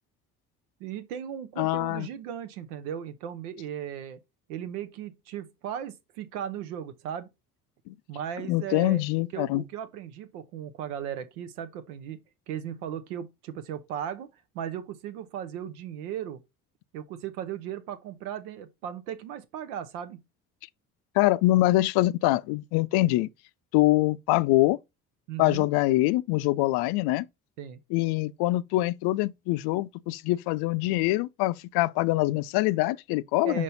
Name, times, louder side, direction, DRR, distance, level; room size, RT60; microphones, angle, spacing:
voice 1, 0.8-4.2 4.5-7.3 8.1-9.0 9.3-12.2 12.5-16.4 16.9-20.2 25.3-25.7 27.6-27.8 33.4-33.6, right 9 dB, 75° right, 0.9 m, -37 dB
voice 2, 1.6-2.1 7.9-8.0 8.5-9.6 21.2-23.3 23.7-24.8 25.4-27.3 27.9-33.6, left 18 dB, 60° left, 0.5 m, -24 dB
5.5 x 5.0 x 3.9 m
hypercardioid pair, 55°, 45 cm